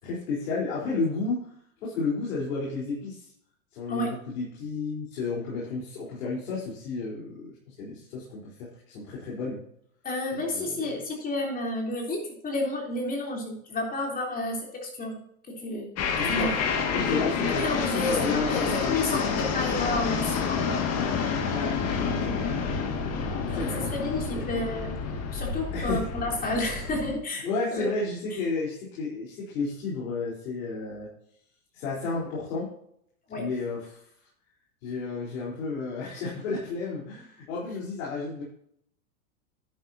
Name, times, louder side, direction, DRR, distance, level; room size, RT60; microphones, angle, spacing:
voice 1, 0.0-1.4 1.8-3.3 3.7-9.6 10.3-11.0 16.1-16.6 16.9-17.7 17.9-19.4 21.5-23.8 24.3-24.4 25.7-26.0 27.3-31.1 31.7-32.7 33.3-34.0 34.8-38.4, left 3 dB, 65° left, -5 dB, 4.2 m, -32 dB
voice 2, 10.0-15.2 15.5-15.9 16.2-16.5 17.5-20.8 23.5-24.9 25.3-27.9 28.3-28.4 33.3-33.5, left 2 dB, 20° left, 0 dB, 3.5 m, -31 dB
sound 1, 16.0-27.2, left 5 dB, 35° left, 2.0 m, -29 dB
11.5 x 9.5 x 2.8 m, 0.70 s
hypercardioid pair, 130°, 43 cm